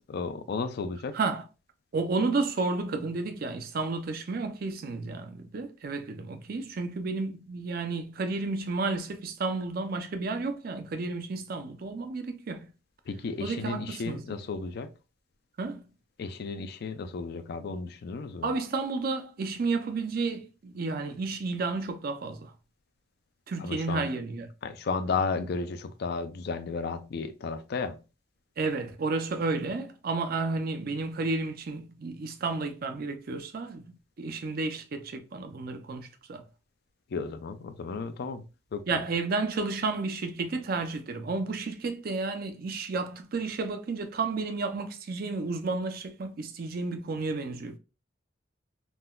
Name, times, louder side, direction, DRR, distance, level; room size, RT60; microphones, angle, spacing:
voice 1, 0.1-1.2 13.1-14.9 16.2-18.5 23.6-24.1 24.6-28.0 37.1-38.4 38.7-38.8, left 4 dB, 55° left, 0.3 m, -33 dB
voice 2, 1.9-12.7 13.4-14.2 15.6-15.8 18.4-22.5 23.5-24.5 28.6-36.4 38.9-47.8, right 3 dB, 50° right, 0.4 m, -32 dB
3.7 x 2.2 x 2.3 m
head